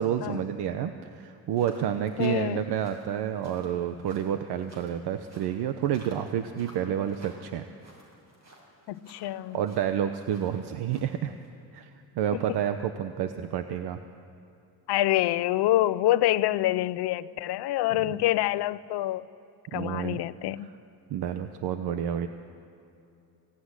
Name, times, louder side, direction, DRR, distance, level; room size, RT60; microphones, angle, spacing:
voice 1, 0.0-7.6 9.5-11.3 11.7-11.9 12.1-14.0 18.1-18.2 19.7-20.2 20.6-20.7 21.1-22.3, right 9 dB, 80° right, 8 dB, 1.0 m, -29 dB
sound 1, 1.5-11.5, equal, 45° right, 6.4 m, -55 dB
voice 2, 2.2-2.6 8.9-9.6 12.5-12.6 14.9-19.3 19.7-20.7, left 15 dB, 85° left, 16 dB, 0.7 m, -26 dB
24.5 x 17.5 x 9.9 m, 2.7 s
cardioid pair, 140°, 39 cm